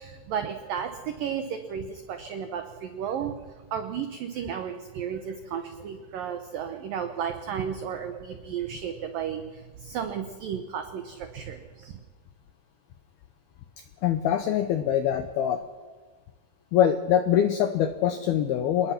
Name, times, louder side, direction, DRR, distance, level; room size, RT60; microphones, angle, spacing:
voice 1, 0.0-3.3 3.7-12.0, right 8 dB, 85° right, 7 dB, 1.9 m, -33 dB
voice 2, 14.0-15.6 16.7-18.9, left 10 dB, 85° left, 8 dB, 2.2 m, -24 dB
27.5 x 20.5 x 5.9 m, 1.4 s
omnidirectional pair, 5.6 m